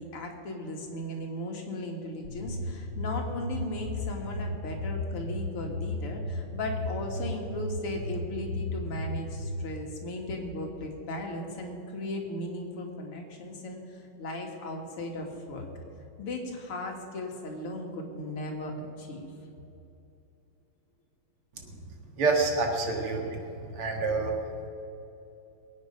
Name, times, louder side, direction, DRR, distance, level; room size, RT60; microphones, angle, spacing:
voice 1, 0.0-15.7 16.2-19.3, left 1 dB, 85° left, 2 dB, 2.8 m, -37 dB
sound 1, 2.2-9.6, left 2 dB, 45° right, 1.5 m, -35 dB
voice 2, 22.2-23.4 23.7-24.3, right 3 dB, 80° right, 1 dB, 2.8 m, -27 dB
22.0 x 9.0 x 5.4 m, 2.8 s
omnidirectional pair, 2.4 m